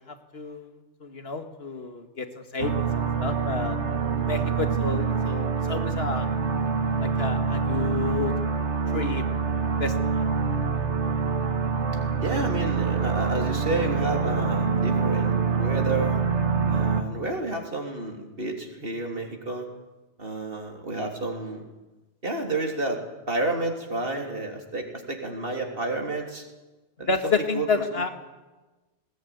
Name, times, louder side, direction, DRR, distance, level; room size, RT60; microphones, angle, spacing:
voice 1, 0.0-3.8 4.3-6.3 7.0-8.3 8.9-9.3 9.8-9.9 27.1-28.1, left 4 dB, 60° left, 7 dB, 2.2 m, -30 dB
sound 1, 2.6-17.0, right 5 dB, 75° right, 1.8 m, -25 dB
voice 2, 12.2-16.2 16.7-19.7 20.2-21.7 22.2-23.0 23.3-26.4 27.0-27.7, right 2 dB, 55° right, 2 dB, 3.6 m, -30 dB
20.0 x 19.0 x 9.4 m, 1.1 s
omnidirectional pair, 1.2 m